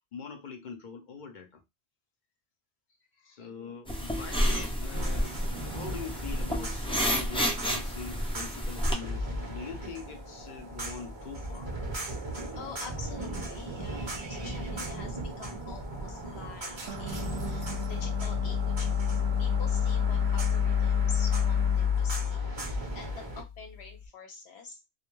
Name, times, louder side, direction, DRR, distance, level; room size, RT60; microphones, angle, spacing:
voice 1, 0.1-1.6 3.2-5.4 5.7-11.7, left 5 dB, 55° left, 0.6 m, -43 dB
voice 2, 3.1-3.8 12.5-24.8, left 4 dB, 80° left, 1.0 m, -47 dB
sound 1, 3.9-8.9, equal, 10° left, 0.4 m, -30 dB
sound 2, 4.9-23.4, right 1 dB, 30° right, 0.6 m, -38 dB
sound 3, 16.9-24.0, left 7 dB, 70° right, 0.8 m, -28 dB
2.4 x 2.1 x 3.0 m
omnidirectional pair, 1.1 m